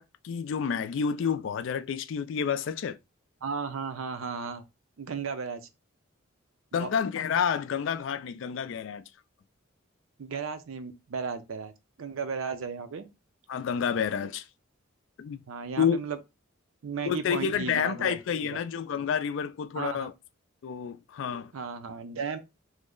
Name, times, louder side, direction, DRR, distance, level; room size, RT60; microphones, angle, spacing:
voice 1, 0.0-3.0 6.7-9.0 13.5-14.5 15.2-15.4 15.8-16.0 17.0-20.1 20.6-21.5, left 7 dB, 65° left, 0.3 m, -29 dB
voice 2, 3.4-4.6 5.0-5.7 6.7-6.9 10.2-11.7 12.0-13.1 15.5-16.2 16.8-18.2 18.5-18.6 19.7-20.1 21.5-22.4, right 5 dB, 75° right, 0.5 m, -35 dB
3.1 x 2.1 x 3.6 m
head